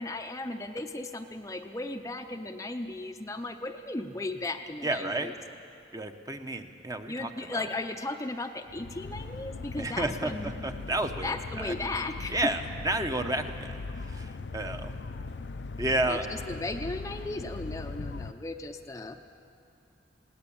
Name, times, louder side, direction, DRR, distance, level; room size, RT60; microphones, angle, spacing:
voice 1, 0.0-5.3 7.1-10.5 11.2-12.4 16.1-19.2, left 2 dB, 20° left, 5 dB, 0.6 m, -36 dB
voice 2, 4.8-5.3 5.9-7.6 9.8-11.3 11.6-11.7 12.3-13.8 14.1-14.9 15.8-16.2, right 2 dB, 20° right, 6 dB, 0.9 m, -31 dB
sound 1, 8.7-18.3, left 3 dB, 70° left, 0.5 m, -39 dB
20.5 x 17.5 x 8.6 m, 2.6 s
head